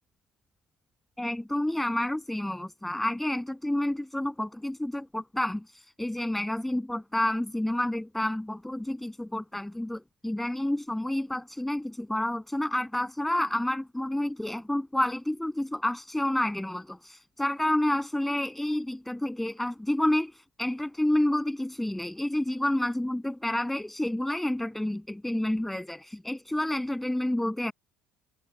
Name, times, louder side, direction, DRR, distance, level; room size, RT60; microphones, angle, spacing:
voice 1, 1.2-27.7, left 1 dB, 5° left, 7.9 m, -29 dB
cardioid pair, 100°, 3 cm